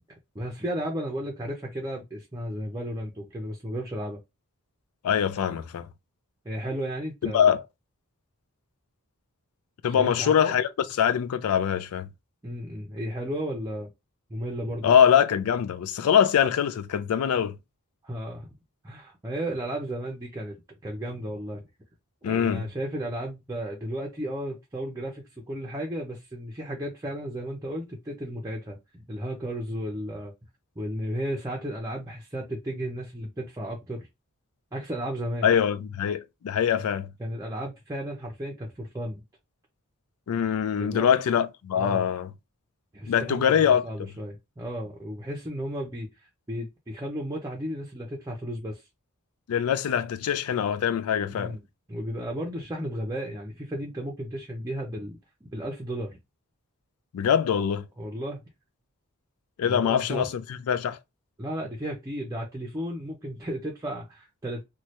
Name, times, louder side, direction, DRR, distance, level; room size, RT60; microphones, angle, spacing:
voice 1, 0.3-4.2 6.4-7.5 9.9-10.6 12.4-13.9 14.3-14.9 18.0-18.5 18.8-21.7 22.2-30.3 30.8-34.1 34.7-35.5 37.2-39.2 40.8-41.1 41.7-42.1 42.9-48.8 51.3-51.6 51.9-55.2 55.5-56.2 58.0-58.4 59.6-60.3 61.4-64.6, equal, 15° right, 0.5 m, -34 dB
voice 2, 5.0-5.9 7.2-7.6 9.8-10.7 11.0-12.1 14.8-17.6 22.2-22.6 35.4-37.1 40.3-42.3 43.1-43.8 49.5-51.6 57.1-57.9 59.6-60.4 60.7-61.0, left 8 dB, 75° left, 0.3 m, -23 dB
3.1 x 2.2 x 2.9 m
head